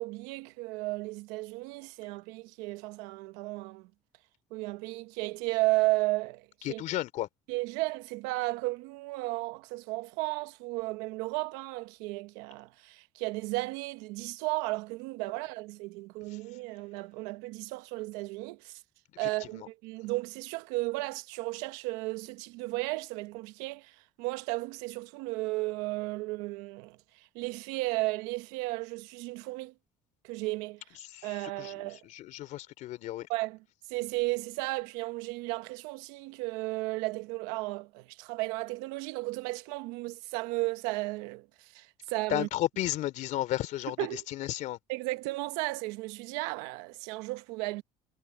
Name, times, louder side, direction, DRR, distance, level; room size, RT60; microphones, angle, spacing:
voice 1, 0.0-3.9 4.5-6.8 7.5-18.8 19.2-29.7 30.2-31.0 31.2-32.0 33.3-33.6 33.9-42.5 44.0-44.2 44.9-47.8, right 22 dB, 85° right, 1.3 m, -34 dB
voice 2, 6.6-7.3 19.4-19.7 31.1-31.7 32.1-33.3 42.3-44.8, left 15 dB, 65° left, 3.4 m, -33 dB
supercardioid pair, 100°, 14 cm